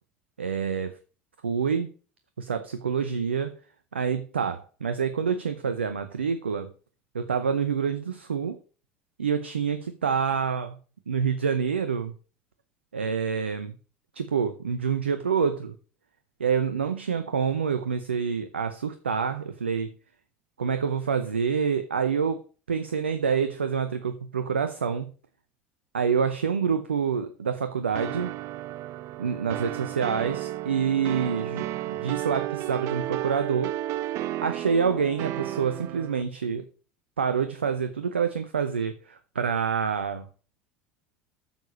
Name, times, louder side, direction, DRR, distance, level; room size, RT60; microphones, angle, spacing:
voice 1, 0.4-1.0 1.4-1.9 2.4-3.6 3.9-6.7 7.1-8.6 9.2-10.8 11.1-12.1 12.9-13.7 14.1-15.7 16.4-19.9 20.6-22.4 22.7-25.1 25.9-28.4 29.2-33.7 34.4-36.7 37.2-40.3, right 6 dB, 80° right, 0.7 m, -27 dB
sound 1, 27.9-36.2, right 14 dB, 50° right, 0.5 m, -33 dB
9.2 x 6.9 x 6.2 m
figure-of-eight pair, 70°, 6 cm